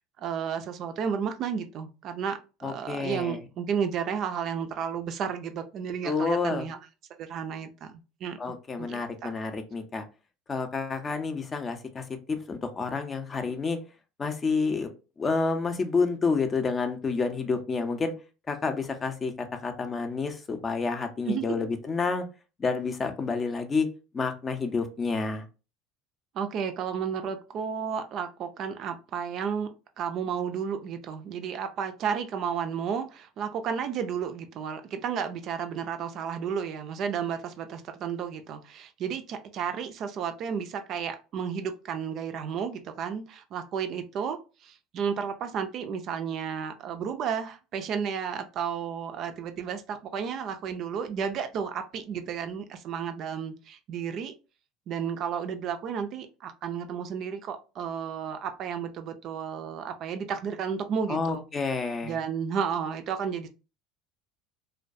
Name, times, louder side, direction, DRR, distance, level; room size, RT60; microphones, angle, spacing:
voice 1, 0.2-6.8 7.2-8.4 8.8-9.3 21.3-21.7 26.3-29.7 30.0-54.3 54.9-61.4 62.0-63.5, right 7 dB, 50° right, 0.4 m, -32 dB
voice 2, 2.6-3.4 6.0-6.7 8.4-10.0 10.5-13.8 14.2-14.9 15.2-18.1 18.5-22.2 22.6-23.9 24.1-25.4 61.1-62.2, left 4 dB, 30° left, 0.5 m, -29 dB
2.2 x 2.2 x 2.5 m
hypercardioid pair, 75°, 0 cm